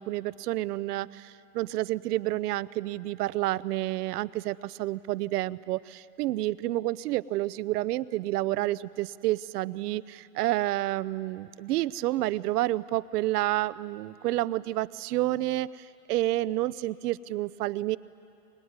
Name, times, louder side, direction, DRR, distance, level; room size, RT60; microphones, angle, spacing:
voice 1, 0.0-18.0, right 16 dB, 75° right, 17 dB, 0.7 m, -29 dB
23.0 x 20.5 x 9.6 m, 2.7 s
supercardioid pair, 155°, 47 cm